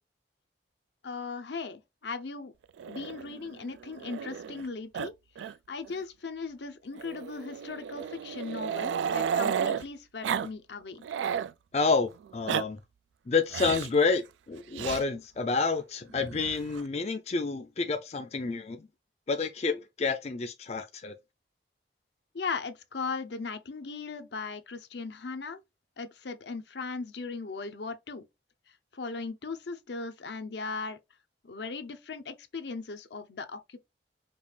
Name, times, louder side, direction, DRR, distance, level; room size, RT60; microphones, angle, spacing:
voice 1, 1.0-2.5 2.9-5.1 5.7-11.0 22.3-25.6 26.0-28.2 28.9-31.0 31.4-33.8, left 4 dB, 70° left, 0.7 m, -38 dB
Growling, 2.8-4.7 4.9-5.1 5.4-5.5 5.9-6.0 7.0-9.8 10.2-10.5 10.8-11.5 12.2-12.6 13.5-14.0 14.7-15.0 16.2-16.8, right 8 dB, 85° right, 0.3 m, -33 dB
voice 2, 11.7-12.8 13.3-18.9 19.3-21.1, left 4 dB, 35° left, 0.4 m, -29 dB
5.2 x 2.4 x 3.3 m
head